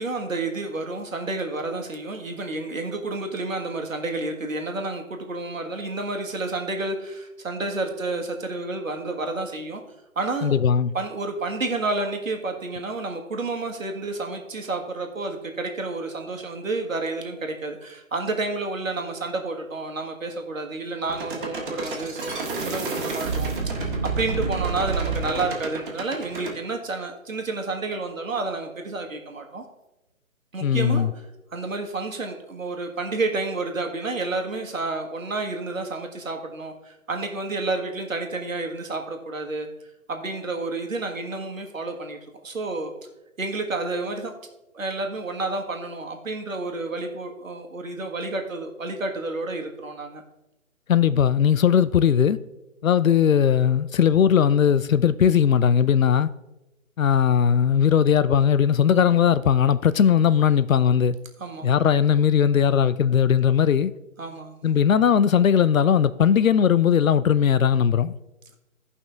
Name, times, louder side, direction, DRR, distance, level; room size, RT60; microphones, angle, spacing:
voice 1, 0.0-9.8 10.1-10.6 10.9-29.6 30.5-31.1 31.5-39.7 40.1-42.2 42.4-42.9 43.4-44.3 44.7-50.2 61.4-61.7 64.2-64.8, right 3 dB, 70° right, 1.6 m, -30 dB
voice 2, 10.4-10.9 30.6-31.1 50.9-52.4 52.8-56.3 57.0-61.2 61.6-63.9 64.6-68.1, left 8 dB, 75° left, 0.5 m, -19 dB
sound 1, 21.1-26.6, right 4 dB, 40° right, 1.8 m, -29 dB
14.5 x 5.5 x 3.4 m
figure-of-eight pair, 145°, 41 cm